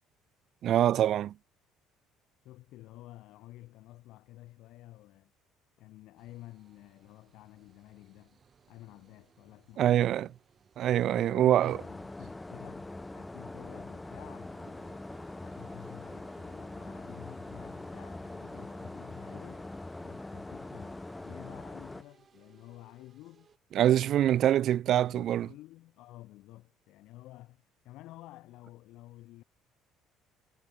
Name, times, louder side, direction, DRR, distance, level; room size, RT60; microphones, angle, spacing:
voice 1, 0.6-1.3 9.8-10.3 10.8-11.8 23.8-25.5, right 11 dB, 60° right, 0.5 m, -24 dB
voice 2, 2.4-5.3 5.8-8.4 8.7-10.3 11.1-15.1 15.4-19.7 20.0-23.5 23.9-24.5 24.9-29.4, left 17 dB, 75° left, 2.6 m, -51 dB
sound 1, 6.2-23.6, right 7 dB, 40° right, 6.6 m, -62 dB
sound 2, 11.7-22.0, left 2 dB, 10° left, 0.5 m, -43 dB
cardioid pair, 95°, 0 cm